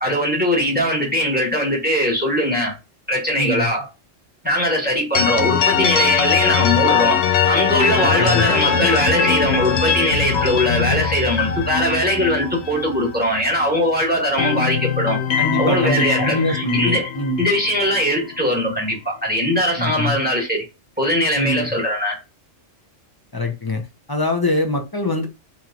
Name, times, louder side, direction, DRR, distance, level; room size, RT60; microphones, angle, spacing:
voice 1, 0.0-2.7 3.1-3.9 4.4-15.2 15.6-17.1 17.4-20.6 21.0-22.1, equal, 10° right, 1.2 m, -20 dB
voice 2, 3.4-3.7 8.0-8.5 15.4-17.4 19.8-20.2 21.3-21.7 23.3-23.8 24.1-25.3, left 2 dB, 30° left, 0.4 m, -23 dB
sound 1, 5.1-13.9 14.2-18.3, left 7 dB, 65° left, 0.8 m, -21 dB
3.0 x 3.0 x 3.7 m
omnidirectional pair, 1.3 m